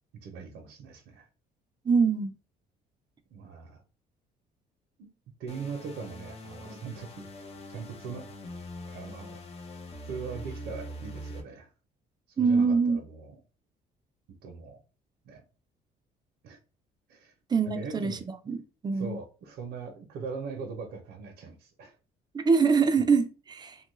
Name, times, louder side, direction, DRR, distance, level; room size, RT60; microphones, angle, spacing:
voice 1, 0.2-1.3 3.3-3.8 5.0-5.1 5.4-8.3 8.9-9.4 10.0-11.7 12.4-13.3 14.4-14.8 15.2-15.4 16.4-16.6 17.1-17.3 17.6-18.3 18.9-22.0, right 5 dB, 75° right, 0.7 m, -40 dB
voice 2, 1.9-2.3 12.4-13.0 17.5-18.2 18.5-18.6 18.8-19.2 22.3-23.8, right 5 dB, 25° right, 0.4 m, -24 dB
sound 1, 5.5-11.4, equal, 35° left, 0.7 m, -43 dB
3.0 x 2.3 x 3.0 m
cardioid pair, 110°, 17 cm